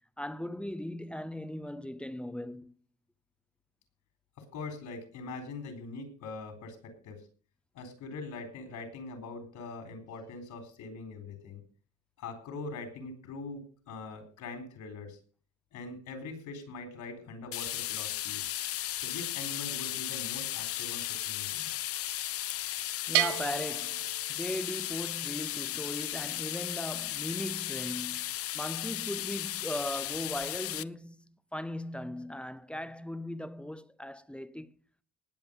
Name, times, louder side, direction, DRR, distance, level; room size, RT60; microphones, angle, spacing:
voice 1, 0.2-2.7 23.1-34.7, left 1 dB, 5° left, 0.5 m, -38 dB
voice 2, 4.4-7.3 7.7-11.6 12.2-15.2 15.7-18.5 19.0-21.7, left 3 dB, 70° left, 4.0 m, -42 dB
sound 1, 17.5-30.8, left 14 dB, 50° left, 0.5 m, -35 dB
Bell, 23.1-24.9, right 17 dB, 75° right, 0.7 m, -32 dB
19.0 x 7.8 x 5.2 m
cardioid pair, 160°, 31 cm